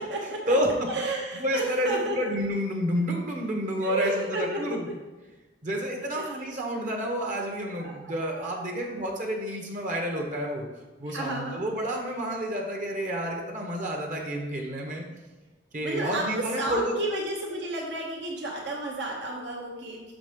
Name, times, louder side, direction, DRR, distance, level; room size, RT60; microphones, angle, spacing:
voice 1, 0.0-0.5 0.9-2.3 3.8-4.8 6.1-6.3 7.8-8.9 11.0-11.6 15.8-20.1, right 2 dB, 65° right, -2 dB, 1.1 m, -32 dB
voice 2, 1.3-4.2 4.6-4.8 5.6-10.7 11.0-15.0 15.7-16.9, equal, 40° right, 1 dB, 1.1 m, -29 dB
6.4 x 5.1 x 5.2 m, 1.2 s
head